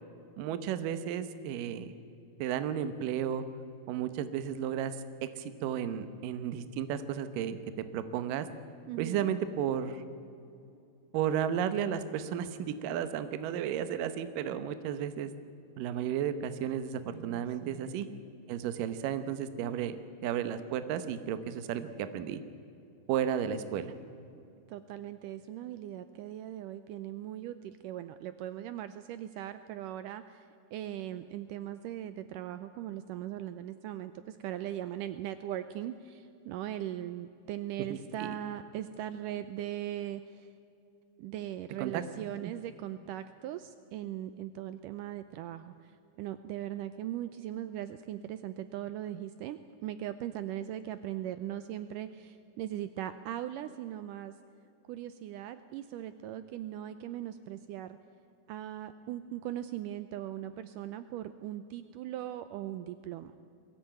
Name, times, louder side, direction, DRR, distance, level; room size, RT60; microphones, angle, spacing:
voice 1, 0.4-1.9 2.4-3.4 3.9-7.6 7.9-8.5 9.0-10.0 11.1-15.3 15.8-18.1 18.5-20.0 20.2-22.4 23.1-23.9 37.9-38.4 41.8-42.0 42.4-42.5, right 9 dB, 70° right, 11 dB, 2.4 m, -33 dB
voice 2, 8.9-9.3 17.1-17.9 24.7-30.5 30.7-40.5 41.2-45.9 46.2-54.3 54.9-58.0 58.5-63.3, right 12 dB, 90° right, 12 dB, 1.9 m, -39 dB
22.0 x 16.5 x 9.1 m, 2.6 s
omnidirectional pair, 4.5 m